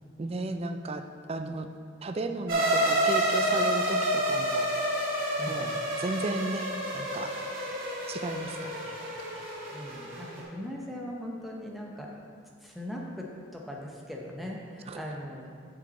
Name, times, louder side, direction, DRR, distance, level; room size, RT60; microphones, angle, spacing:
voice 1, 0.2-1.0 1.3-1.7 2.0-4.7 5.5-7.3 8.1-9.0 9.3-9.5 14.9-15.0, right 2 dB, 30° right, 7 dB, 0.4 m, -35 dB
sound 1, 2.5-10.4, right 1 dB, 45° right, 1.7 m, -29 dB
voice 2, 5.4-5.8 9.7-12.1 12.6-15.6, equal, ahead, -2 dB, 0.8 m, -40 dB
7.4 x 6.7 x 4.2 m, 2.1 s
head